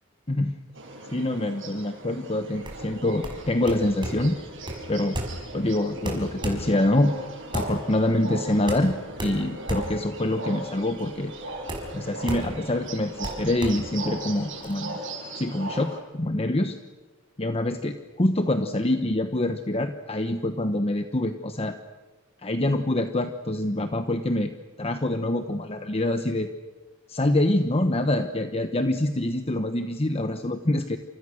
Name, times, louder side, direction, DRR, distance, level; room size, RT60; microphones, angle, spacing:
sound 1, 0.7-16.0, right 2 dB, 65° right, 6.6 m, -38 dB
voice 1, 1.1-4.4 4.9-5.2 5.5-7.1 7.5-11.3 11.9-15.0 15.3-16.8 17.4-21.8 22.4-24.5 24.8-26.5 27.1-31.0, left 1 dB, 30° left, 8 dB, 1.1 m, -25 dB
sound 2, 2.5-14.7, right 1 dB, 25° right, 5.7 m, -35 dB
29.5 x 28.0 x 6.5 m, 1.3 s
head